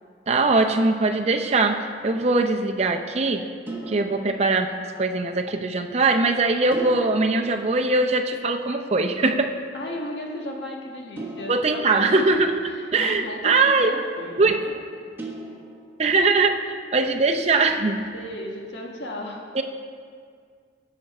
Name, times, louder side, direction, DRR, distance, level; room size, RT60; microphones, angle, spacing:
voice 1, 0.3-3.4 3.9-4.7 5.0-9.5 11.5-13.9 14.4-14.7 16.0-18.1 19.5-19.6, right 3 dB, 40° right, 4 dB, 0.6 m, -21 dB
sound 1, 3.7-5.2 6.7-8.6 11.2-12.8 15.2-16.3, right 1 dB, 15° right, 1.3 m, -39 dB
voice 2, 9.7-12.3 12.7-14.7 18.1-19.4, left 1 dB, 85° left, 0 dB, 1.5 m, -35 dB
17.0 x 5.9 x 4.2 m, 2.1 s
head